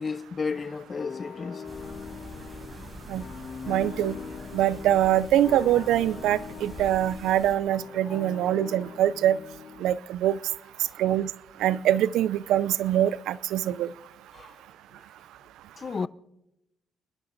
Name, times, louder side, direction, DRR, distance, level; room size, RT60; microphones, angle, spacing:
voice 1, 0.0-1.6 8.1-8.3 10.8-11.0 14.3-14.6 15.8-16.1, left 5 dB, 35° left, 0.6 m, -33 dB
sound 1, 1.0-9.9, left 6 dB, 55° left, 1.5 m, -41 dB
sound 2, 1.6-7.5, equal, 5° left, 6.0 m, -45 dB
voice 2, 3.7-4.2 4.5-9.4 9.8-10.4 11.0-11.3 11.6-13.9, right 12 dB, 85° right, 0.5 m, -24 dB
28.0 x 11.5 x 4.0 m
cardioid pair, 90°, 0 cm